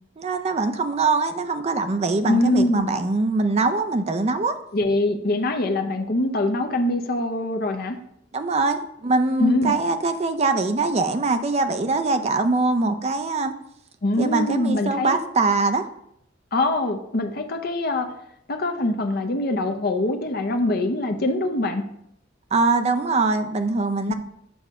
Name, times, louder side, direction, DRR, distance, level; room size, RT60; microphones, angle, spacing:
voice 1, 0.2-4.6 8.3-13.6 14.2-15.9 20.6-20.8 22.5-24.1, right 3 dB, 35° right, 8 dB, 0.5 m, -23 dB
voice 2, 2.3-2.9 4.7-8.0 9.4-9.7 14.0-15.2 16.5-18.1 18.5-21.8 24.1-24.2, left 1 dB, 50° left, 5 dB, 0.7 m, -23 dB
7.0 x 5.5 x 3.6 m, 0.77 s
head